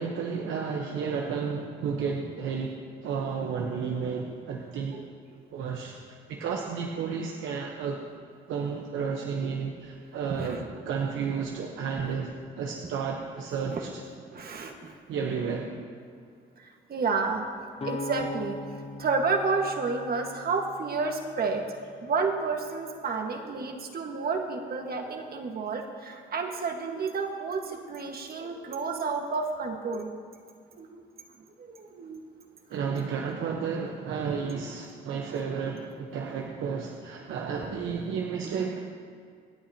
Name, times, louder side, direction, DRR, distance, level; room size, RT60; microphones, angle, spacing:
voice 1, 0.0-4.9 5.5-8.0 8.5-14.0 14.3-14.4 15.1-15.7 32.7-38.8, right 6 dB, 85° right, 1 dB, 1.0 m, -32 dB
voice 2, 14.3-14.9 16.9-17.4 17.8-18.6 19.0-21.6 22.0-30.1 30.7-31.0 31.6-32.2 34.4-34.6 37.6-37.7, right 4 dB, 50° right, 3 dB, 1.6 m, -30 dB
sound 1, 17.8-21.6, left 2 dB, 30° left, 0.9 m, -40 dB
26.0 x 8.8 x 2.9 m, 2.2 s
cardioid pair, 90°, 20 cm